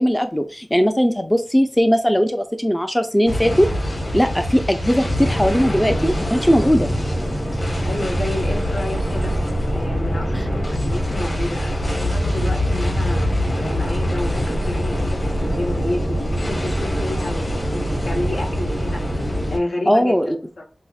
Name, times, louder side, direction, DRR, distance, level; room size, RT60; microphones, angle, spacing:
voice 1, 0.0-6.9 10.4-10.5 19.9-20.4, equal, 10° left, 7 dB, 0.4 m, -19 dB
sound 1, 3.3-19.6, equal, 45° left, 1.9 m, -23 dB
voice 2, 7.8-9.3 9.7-19.0 19.5-20.6, left 1 dB, 80° left, 0 dB, 0.9 m, -30 dB
5.5 x 2.0 x 2.3 m, 0.35 s
wide cardioid pair, 70°, 0 cm